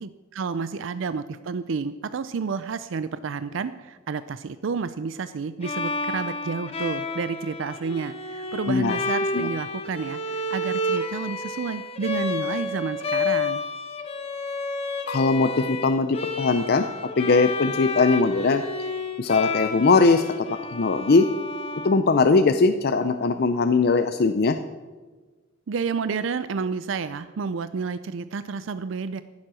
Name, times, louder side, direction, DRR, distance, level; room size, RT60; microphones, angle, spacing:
voice 1, 0.0-13.6 25.7-29.2, right 5 dB, 70° right, 13 dB, 0.4 m, -30 dB
Bowed string instrument, 5.6-22.5, left 2 dB, 30° left, 1.0 m, -30 dB
voice 2, 8.7-9.0 9.3-9.5 15.1-16.9 17.2-18.6 19.2-21.2 21.8-24.6, left 4 dB, 55° left, 8 dB, 0.5 m, -20 dB
14.5 x 7.4 x 6.2 m, 1.3 s
head